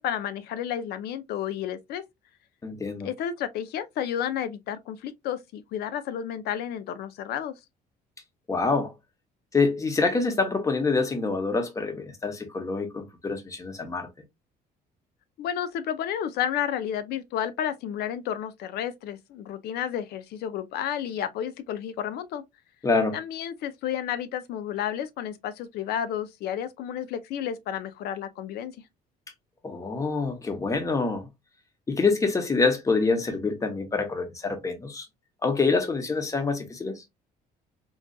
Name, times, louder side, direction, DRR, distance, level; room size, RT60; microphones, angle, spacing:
voice 1, 0.0-2.0 3.0-7.6 15.4-22.4 23.1-28.7, left 9 dB, 70° left, 0.5 m, -31 dB
voice 2, 2.6-3.1 8.5-8.9 9.5-14.1 22.8-23.2 29.6-31.3 31.9-35.1 35.4-37.0, left 4 dB, 20° left, 0.9 m, -26 dB
3.9 x 2.4 x 2.3 m
cardioid pair, 110°, 17 cm